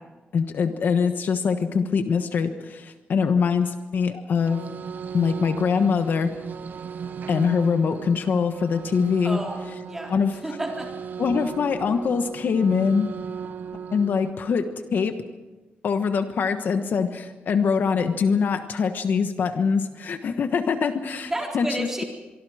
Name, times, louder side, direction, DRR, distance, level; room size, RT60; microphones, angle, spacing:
voice 1, 0.3-4.7 5.1-6.3 7.3-9.4 10.1-10.3 11.2-13.1 13.9-15.1 15.8-22.0, left 6 dB, 60° left, 8 dB, 1.2 m, -23 dB
sound 1, 4.3-14.3, right 6 dB, 55° right, 0.8 m, -36 dB
voice 2, 9.2-10.1 10.4-10.9 21.3-22.1, right 1 dB, 10° right, 0 dB, 3.8 m, -31 dB
25.0 x 24.0 x 5.0 m, 1.2 s
wide cardioid pair, 175°, 4 cm